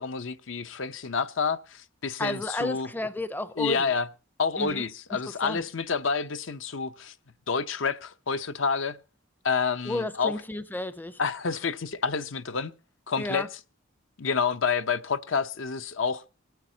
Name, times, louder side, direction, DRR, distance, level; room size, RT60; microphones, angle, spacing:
voice 1, 0.0-2.9 3.6-4.1 4.4-7.1 7.5-9.0 9.4-10.3 11.2-12.7 13.1-13.5 14.2-16.2, left 5 dB, 70° left, 0.7 m, -28 dB
voice 2, 2.2-4.0 4.6-4.9 5.4-5.6 9.9-11.2 13.2-13.5, left 1 dB, 10° left, 0.5 m, -32 dB
25.0 x 9.3 x 2.8 m
head